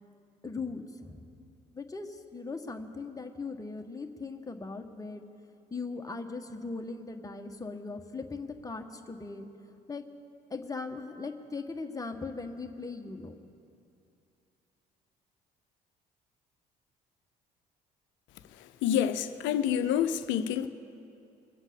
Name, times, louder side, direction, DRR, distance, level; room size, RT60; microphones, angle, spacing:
voice 1, 0.4-1.2 1.7-5.2 5.7-9.5 9.9-10.0 10.5-13.3, left 3 dB, 15° left, 4 dB, 1.4 m, -39 dB
voice 2, 18.8-20.7, left 9 dB, 65° left, 12 dB, 0.8 m, -27 dB
23.0 x 8.0 x 6.9 m, 2.6 s
hypercardioid pair, 50°, 21 cm